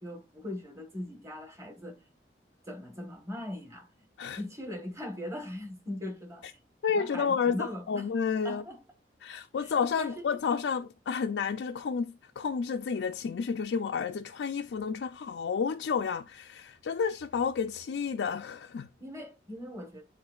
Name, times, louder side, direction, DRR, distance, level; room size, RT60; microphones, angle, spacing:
voice 1, 0.0-2.0 2.6-3.9 4.4-6.6 6.9-8.1 8.4-8.8 9.6-9.7 10.0-10.3 19.0-20.0, left 1 dB, 15° right, 1.3 m, -40 dB
voice 2, 6.8-8.6 9.2-18.9, left 6 dB, 85° left, 0.4 m, -31 dB
10.5 x 3.8 x 2.3 m
head